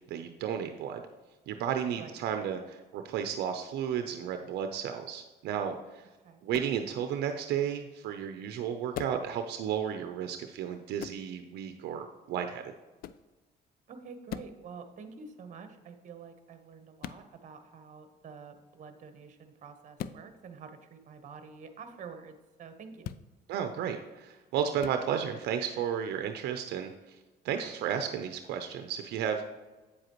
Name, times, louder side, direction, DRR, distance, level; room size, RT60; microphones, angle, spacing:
voice 1, 0.1-1.0 1.5-6.0 6.4-12.7 23.5-27.2 27.4-29.4, right 8 dB, 75° right, 6 dB, 0.6 m, -33 dB
sound 1, 6.5-6.8 8.9-9.3 11.0-11.2 13.0-13.3 14.3-14.6 17.0-17.2 20.0-20.2 23.0-23.3 24.8-25.0, left 10 dB, 60° left, 0.4 m, -40 dB
voice 2, 13.9-23.1, right 5 dB, 45° right, 8 dB, 1.1 m, -48 dB
8.5 x 7.7 x 3.0 m, 1.2 s
cardioid pair, 110°, 17 cm